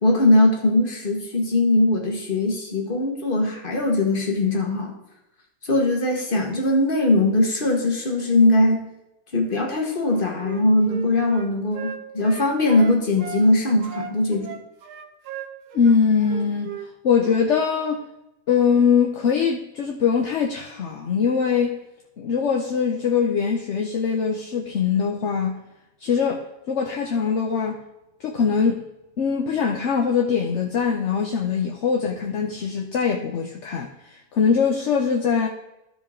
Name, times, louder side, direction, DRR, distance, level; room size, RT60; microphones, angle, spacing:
voice 1, 0.0-4.9 5.6-8.8 9.3-14.6, left 2 dB, 35° left, 2 dB, 1.6 m, -20 dB
Wind instrument woodwind instrument, 10.0-13.5 13.8-16.9 17.2-17.4, right 8 dB, 75° right, 1.3 m, -37 dB
voice 2, 15.7-16.7 17.0-18.0 18.5-21.8 22.2-25.6 26.0-27.8 28.2-28.9 29.2-35.5, left 6 dB, 55° left, 2 dB, 0.9 m, -22 dB
13.5 x 5.2 x 3.7 m, 0.92 s
omnidirectional pair, 1.8 m